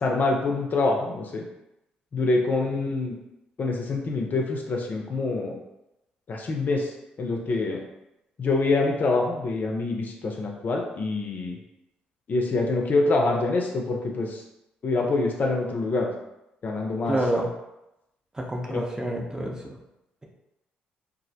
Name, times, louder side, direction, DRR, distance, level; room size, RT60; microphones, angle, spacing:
voice 1, 0.0-1.4 2.1-3.2 3.6-5.6 6.3-6.9 7.2-7.8 8.4-11.6 12.3-14.4 14.8-16.1 16.6-17.4 18.7-18.8, left 3 dB, 45° left, 1 dB, 0.4 m, -25 dB
voice 2, 17.1-17.5 18.3-19.8, right 1 dB, 15° right, -1 dB, 0.6 m, -28 dB
2.3 x 2.0 x 2.7 m, 0.90 s
hypercardioid pair, 45°, 4 cm